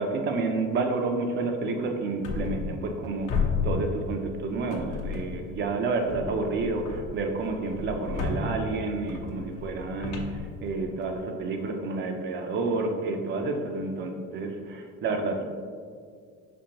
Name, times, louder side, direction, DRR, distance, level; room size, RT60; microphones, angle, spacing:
voice 1, 0.0-15.4, right 3 dB, 35° right, 4 dB, 0.5 m, -30 dB
sound 1, 2.2-3.0 3.3-4.4 4.7-5.5 6.1-11.2, left 4 dB, 70° left, 0.9 m, -33 dB
5.2 x 3.4 x 2.9 m, 2.1 s
cardioid pair, 160°, 31 cm